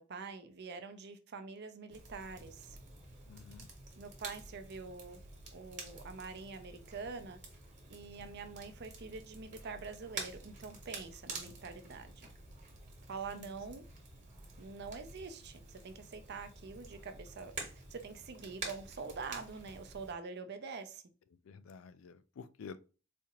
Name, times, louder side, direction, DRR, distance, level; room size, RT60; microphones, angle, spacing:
voice 1, 0.0-2.8 4.0-5.2 5.5-7.4 7.9-12.3 13.1-13.8 14.6-17.5 17.9-21.0, right 4 dB, 55° right, 0.5 m, -45 dB
Crackle, 1.9-20.1, right 3 dB, 35° right, 1.2 m, -49 dB
voice 2, 3.3-3.7 8.2-8.3 11.4-11.6 13.3-13.4 21.4-22.8, left 5 dB, 80° left, 0.4 m, -50 dB
4.2 x 2.4 x 2.9 m
head